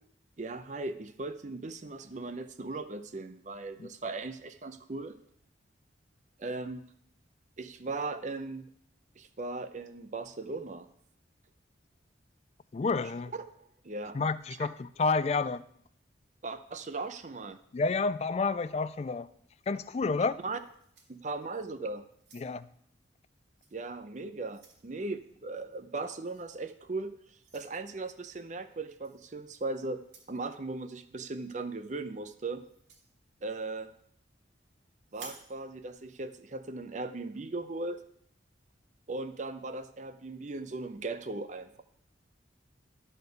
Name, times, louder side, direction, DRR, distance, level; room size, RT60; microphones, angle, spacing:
voice 1, 0.4-5.2 6.4-6.8 7.6-8.7 9.2-10.9 13.3-13.4 13.8-14.2 14.6-14.7 16.4-17.6 20.1-20.2 20.4-20.6 21.1-22.1 23.7-27.1 27.5-32.6 33.4-33.9 35.1-38.0 39.1-41.8, right 3 dB, 40° right, 0.6 m, -38 dB
voice 2, 12.7-13.3 14.1-15.6 17.7-19.3 19.7-20.3 22.3-22.7, left 4 dB, 35° left, 0.3 m, -29 dB
sound 1, 20.5-21.7 22.1-22.8 23.6-23.8 24.2-24.9 26.3-26.5 27.4-27.7 29.0-29.2 30.0-30.4 32.6-33.1 35.1-35.5, right 4 dB, 65° right, 2.0 m, -53 dB
11.5 x 4.3 x 6.8 m
head